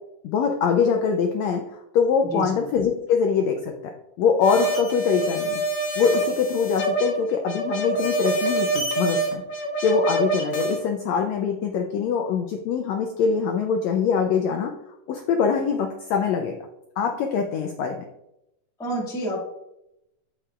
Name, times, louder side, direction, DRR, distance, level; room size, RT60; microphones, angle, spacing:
voice 1, 0.2-3.9 4.2-5.6 6.0-9.4 9.8-14.7 15.1-16.6 17.0-18.0, left 6 dB, 90° left, 4 dB, 1.5 m, -23 dB
sound 1, 4.4-10.8, right 2 dB, 55° left, 2.0 m, -26 dB
voice 2, 18.8-19.4, right 1 dB, 5° left, -3 dB, 0.7 m, -28 dB
8.8 x 6.4 x 2.4 m, 0.85 s
omnidirectional pair, 3.8 m